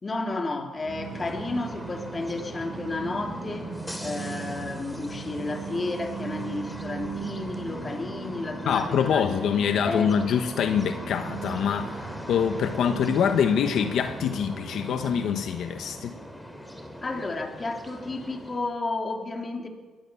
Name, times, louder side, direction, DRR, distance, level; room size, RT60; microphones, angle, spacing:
voice 1, 0.0-3.7 4.0-10.3 17.0-19.7, left 2 dB, 30° left, 4 dB, 3.2 m, -32 dB
sound 1, 0.7-18.8, equal, 5° left, 3.2 m, -40 dB
sound 2, 0.8-15.3, right 5 dB, 70° right, 4.3 m, -39 dB
voice 2, 8.7-16.1, left 8 dB, 70° left, 7 dB, 1.2 m, -25 dB
22.5 x 17.5 x 7.0 m, 1.4 s
cardioid pair, 90°, 0 cm